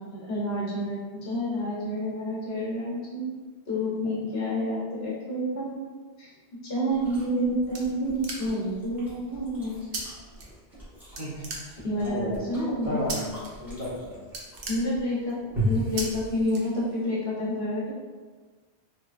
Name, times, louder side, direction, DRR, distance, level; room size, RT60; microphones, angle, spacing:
voice 1, 0.1-3.3 3.7-5.8 6.2-6.3 6.6-9.8 11.8-13.0 14.7-15.4 15.6-17.9, equal, 65° left, -5 dB, 1.1 m, -29 dB
Chewing mastication, 6.9-17.1, equal, ahead, 1.2 m, -38 dB
sound 1, 7.5-8.8 9.9-10.0 10.4-10.9 11.2-12.1 13.1-13.5 13.8-14.0 14.2-15.4 16.0-16.1 16.5-17.2, right 3 dB, 85° right, 0.9 m, -37 dB
voice 2, 12.0-12.4 12.8-14.2, left 1 dB, 50° right, -9 dB, 1.3 m, -33 dB
3.2 x 3.1 x 2.4 m, 1.4 s
omnidirectional pair, 1.1 m